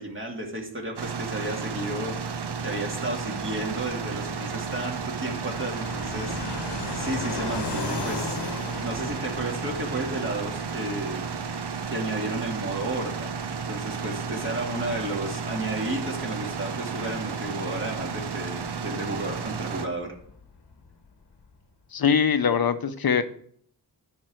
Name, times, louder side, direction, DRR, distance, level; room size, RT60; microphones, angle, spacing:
voice 1, 0.0-2.2 2.6-8.4 8.8-11.2 11.9-13.3 13.7-20.2, right 2 dB, 30° right, 0 dB, 2.4 m, -32 dB
sound 1, 1.0-19.9, right 5 dB, 80° right, 0.8 m, -33 dB
Fixed-wing aircraft airplane, 3.2-21.6, left 4 dB, 90° left, 1.2 m, -40 dB
voice 2, 21.9-23.2, left 7 dB, 65° left, 11 dB, 0.8 m, -22 dB
10.0 x 4.0 x 6.4 m, 0.63 s
cardioid pair, 40°, 40 cm